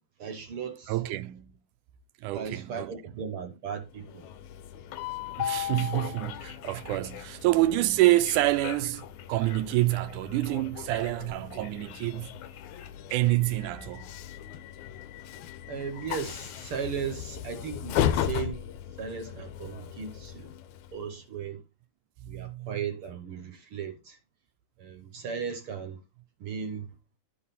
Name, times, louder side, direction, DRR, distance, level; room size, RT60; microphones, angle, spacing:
voice 1, 0.2-1.0 2.3-4.3 15.7-18.6 19.0-20.5 20.9-21.6 22.3-24.2 24.8-26.0 26.4-27.0, right 6 dB, 60° right, 1.5 m, -36 dB
voice 2, 0.9-1.5 2.2-2.9 5.3-12.3 13.1-14.1 22.2-22.8, right 17 dB, 85° right, 2.2 m, -27 dB
Train, 3.9-21.2, left 10 dB, 80° left, 2.1 m, -36 dB
12.0 x 5.6 x 4.1 m
omnidirectional pair, 3.5 m